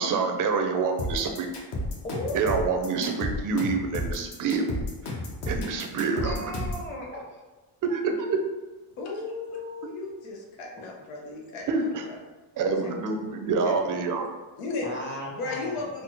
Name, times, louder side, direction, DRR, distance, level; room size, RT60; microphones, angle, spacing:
voice 1, 0.0-1.5 2.3-4.8 5.0-5.2 5.5-6.5 7.8-8.4 11.7-12.0 12.6-14.3, right 4 dB, 40° right, 4 dB, 0.5 m, -27 dB
sound 1, 1.0-6.9, left 1 dB, 50° left, 0.9 m, -32 dB
voice 2, 2.0-2.4 6.1-7.4 14.8-16.0, equal, 20° left, -2 dB, 0.9 m, -36 dB
voice 3, 9.0-12.2 12.7-12.8 13.6-14.0 14.6-14.9 15.3-16.0, left 3 dB, 85° left, 0 dB, 0.9 m, -35 dB
4.1 x 2.0 x 2.9 m, 1.2 s
cardioid pair, 100°, 50 cm